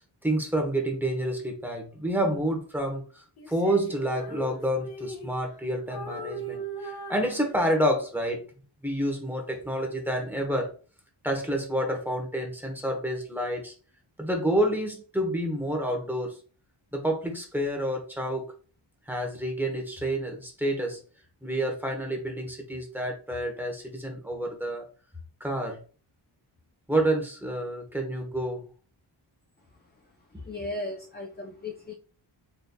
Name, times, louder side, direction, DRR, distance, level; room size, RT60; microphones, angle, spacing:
voice 1, 0.2-8.5 8.8-10.7 11.2-13.7 14.2-16.4 16.9-18.5 19.1-21.0 21.4-24.8 25.4-25.8 26.9-28.7 30.3-30.4, right 1 dB, 5° right, 2 dB, 1.2 m, -29 dB
Female singing, 3.4-5.6 5.9-8.0, right 2 dB, 50° left, 1.2 m, -39 dB
voice 2, 30.4-31.9, left 2 dB, 20° left, 2 dB, 0.5 m, -36 dB
4.0 x 3.3 x 2.3 m, 0.37 s
wide cardioid pair, 90°, 49 cm